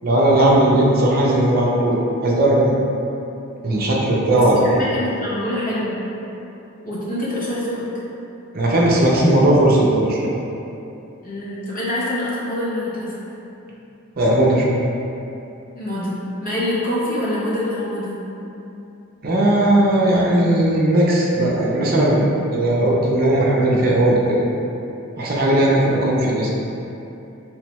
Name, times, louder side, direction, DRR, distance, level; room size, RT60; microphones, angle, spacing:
voice 1, 0.0-2.7 3.6-4.6 8.5-10.3 14.2-14.7 19.2-22.3 22.5-24.5 25.2-26.5, right 1 dB, 45° right, -4 dB, 0.6 m, -17 dB
voice 2, 4.3-6.0 6.8-7.9 11.2-13.1 15.7-18.3, left 1 dB, 40° left, -8 dB, 0.9 m, -25 dB
3.5 x 3.2 x 3.0 m, 2.8 s
head